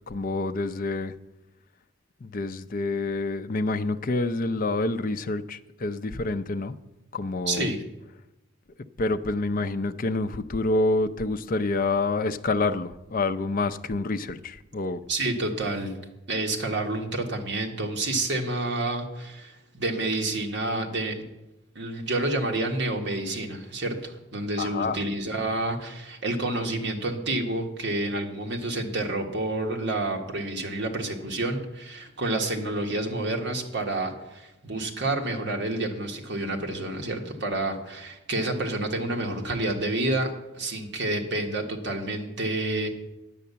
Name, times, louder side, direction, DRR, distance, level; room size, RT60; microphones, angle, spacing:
voice 1, 0.1-1.1 2.2-6.7 7.1-7.7 9.0-15.0 24.6-25.0, left 2 dB, 40° left, 0.5 m, -27 dB
voice 2, 7.5-7.8 15.1-15.9 16.3-21.3 21.7-40.3 40.6-42.9, right 2 dB, 55° right, 1.5 m, -29 dB
10.0 x 8.2 x 6.8 m
head